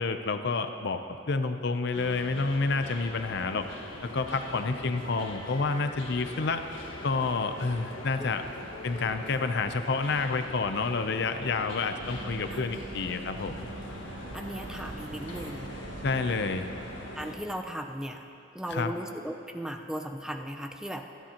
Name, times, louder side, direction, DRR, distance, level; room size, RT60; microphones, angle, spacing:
voice 1, 0.0-3.7 4.1-6.6 7.0-8.4 8.8-13.7 16.0-16.7 18.7-18.9, left 4 dB, 60° left, 8 dB, 0.6 m, -29 dB
sound 1, 1.9-17.4, left 1 dB, 85° left, 1.5 m, -42 dB
sound 2, 12.0-17.6, right 2 dB, 65° right, 0.6 m, -43 dB
voice 2, 14.3-15.7 17.1-18.2 18.5-21.1, equal, 5° right, 4 dB, 0.4 m, -37 dB
26.0 x 10.0 x 2.9 m, 2.8 s
head